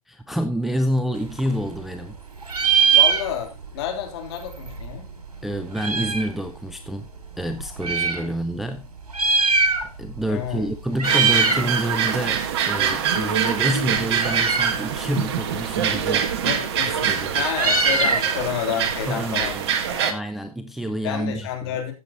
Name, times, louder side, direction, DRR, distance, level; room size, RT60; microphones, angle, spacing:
voice 1, 0.1-2.2 5.4-7.1 7.4-8.9 9.2-9.7 10.0-16.3 16.9-17.5 19.1-19.7 20.1-21.7, equal, ahead, 0.4 m, -28 dB
Meow, 1.2-2.2 2.4-3.7 4.0-4.1 4.3-6.4 7.0-8.2 9.0-10.2 10.4-10.7 10.9-11.7 12.1-19.9, right 5 dB, 90° right, 2.6 m, -23 dB
voice 2, 2.6-5.1 8.2-8.3 10.3-10.6 16.4-19.6 19.9-20.1 21.0-21.9, left 9 dB, 45° left, 3.4 m, -30 dB
sound 1, 11.0-20.1, right 8 dB, 40° right, 1.7 m, -24 dB
15.0 x 7.2 x 3.0 m
hypercardioid pair, 130°, 19 cm